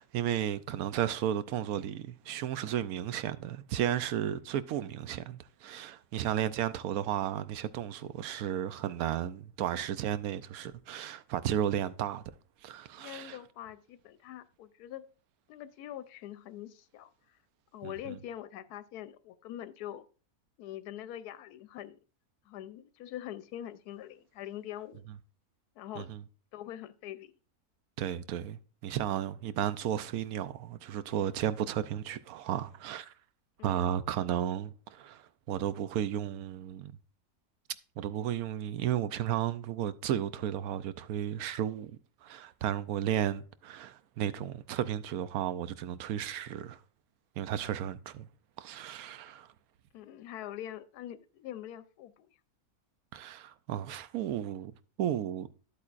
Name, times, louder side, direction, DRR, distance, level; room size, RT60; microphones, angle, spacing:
voice 1, 0.0-12.2 12.6-13.4 17.8-18.2 26.0-26.2 28.0-33.1 33.6-36.9 38.0-46.8 47.4-48.3 48.6-49.5 53.1-54.7 55.0-55.5, right 10 dB, 75° right, 1.0 m, -34 dB
voice 2, 13.0-15.1 15.5-17.1 17.7-20.0 20.6-22.0 22.5-25.1 25.8-26.1 26.5-27.3 33.6-34.0 49.9-52.3, left 12 dB, 85° left, 1.1 m, -44 dB
11.0 x 8.3 x 2.5 m
omnidirectional pair, 1.6 m